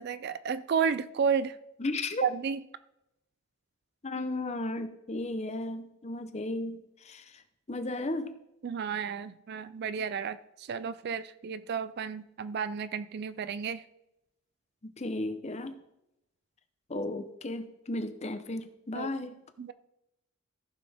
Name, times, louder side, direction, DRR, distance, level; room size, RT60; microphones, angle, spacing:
voice 1, 0.0-1.5 2.2-2.6 8.6-13.8 18.9-19.1 19.6-19.7, right 6 dB, 45° right, 0.3 m, -32 dB
voice 2, 1.8-2.3 4.0-7.2 7.7-8.3 14.8-15.7 16.9-19.3, left 2 dB, 30° left, 0.7 m, -34 dB
15.0 x 5.9 x 3.5 m
head